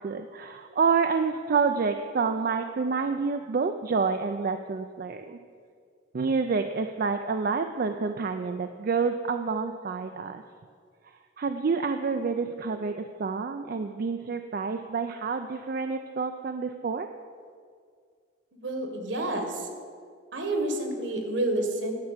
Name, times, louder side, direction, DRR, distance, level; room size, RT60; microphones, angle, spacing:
voice 1, 0.0-5.4 6.1-10.4 11.4-17.1, right 5 dB, 50° right, 7 dB, 0.4 m, -28 dB
voice 2, 18.5-19.7 20.3-21.9, right 1 dB, 65° right, 4 dB, 1.5 m, -29 dB
10.5 x 5.8 x 8.1 m, 2.1 s
head